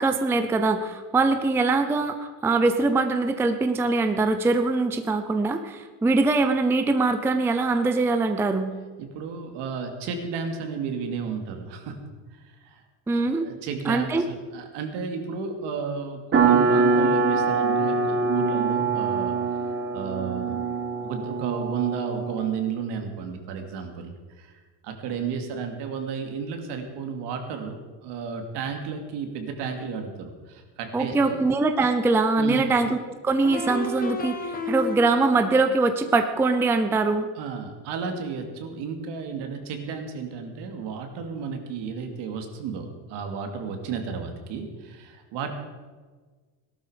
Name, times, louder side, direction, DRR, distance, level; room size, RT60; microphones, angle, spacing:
voice 1, 0.0-8.7 13.1-13.5 13.9-14.2 30.9-33.0 33.2-37.3, right 3 dB, 5° right, 7 dB, 0.4 m, -22 dB
voice 2, 9.0-12.0 12.3-12.8 13.4-19.4 19.9-20.7 21.0-24.6 24.8-31.4 32.4-32.7 37.3-45.5, right 6 dB, 70° right, 5 dB, 2.5 m, -33 dB
sound 1, 16.3-22.5, right 4 dB, 30° right, 2.6 m, -24 dB
sound 2, 33.4-35.4, left 2 dB, 20° left, 1.1 m, -32 dB
18.0 x 12.5 x 5.1 m, 1.4 s
cardioid pair, 175°, 43 cm